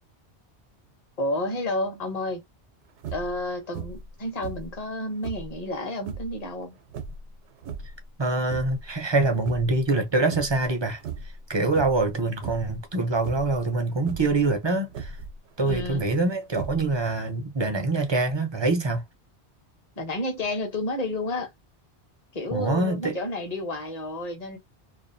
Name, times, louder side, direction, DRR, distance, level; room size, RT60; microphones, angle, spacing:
voice 1, 1.2-2.4 3.1-6.8 15.6-16.0 20.0-21.5 22.3-24.6, left 1 dB, 40° left, 0.8 m, -30 dB
sound 1, 3.0-3.4 3.7-4.1 4.4-5.6 6.0-6.3 6.9-8.0 8.4-8.9 9.3-10.0 10.3-10.7 11.0-11.4 11.7-12.1 12.4-12.8 13.2-13.6 14.0-14.3 14.9-16.0 16.5-17.1, right 5 dB, 85° right, 0.9 m, -37 dB
voice 2, 8.2-11.0 11.5-15.1 15.6-19.0 22.5-23.2, right 2 dB, 35° right, 0.4 m, -25 dB
2.5 x 2.3 x 2.5 m
omnidirectional pair, 1.2 m